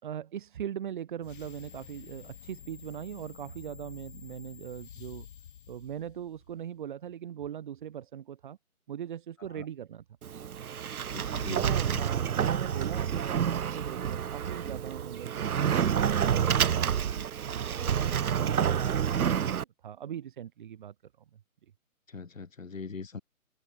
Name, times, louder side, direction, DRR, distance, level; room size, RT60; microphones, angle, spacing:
voice 1, 0.0-5.3 5.7-8.6 8.9-10.0 11.5-20.9 21.3-21.4, right 10 dB, 35° right, 3.3 m, -40 dB
sound 1, 1.2-6.6, left 9 dB, 35° left, 3.1 m, -49 dB
Sliding door, 10.2-19.6, right 8 dB, 80° right, 0.5 m, -28 dB
voice 2, 11.1-11.7 22.1-23.2, left 4 dB, 65° left, 2.7 m, -41 dB
figure-of-eight pair, 140°, 43 cm